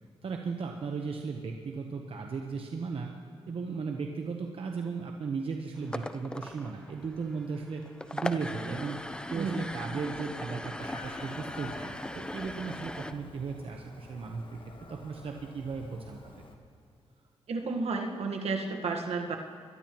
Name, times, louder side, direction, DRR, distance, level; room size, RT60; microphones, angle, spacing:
voice 1, 0.2-3.1 3.5-7.8 8.1-16.4, right 5 dB, 60° right, 2 dB, 1.0 m, -36 dB
sound 1, 5.8-13.1, left 1 dB, 10° left, 0.6 m, -39 dB
Chicken rooster, 10.8-16.6, left 3 dB, 50° left, 1.4 m, -49 dB
voice 2, 17.5-19.4, right 4 dB, 75° right, 3 dB, 1.4 m, -32 dB
21.5 x 12.0 x 3.0 m, 2.5 s
cardioid pair, 70°, 11 cm